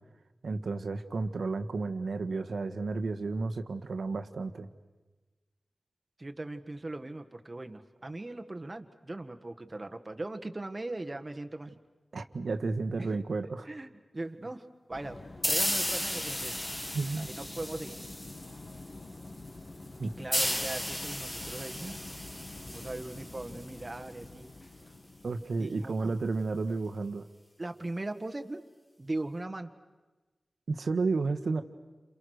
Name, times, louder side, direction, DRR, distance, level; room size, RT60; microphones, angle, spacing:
voice 1, 0.4-4.7 12.1-13.7 16.9-17.3 20.0-20.1 25.2-27.2 30.7-31.6, right 3 dB, 80° right, 8 dB, 1.5 m, -32 dB
voice 2, 6.2-11.7 13.0-13.2 13.6-15.2 15.5-16.6 17.2-17.3 17.6-18.0 20.0-22.0 22.7-24.5 25.6-26.1 27.6-28.6 29.0-29.7, right 2 dB, 30° right, 6 dB, 1.6 m, -39 dB
sound 1, 14.9-25.9, left 2 dB, 45° left, 2.2 m, -47 dB
sound 2, 15.4-18.8 20.3-23.8, equal, 10° left, 1.6 m, -34 dB
29.5 x 28.0 x 6.5 m, 1.2 s
wide cardioid pair, 95°, 0 cm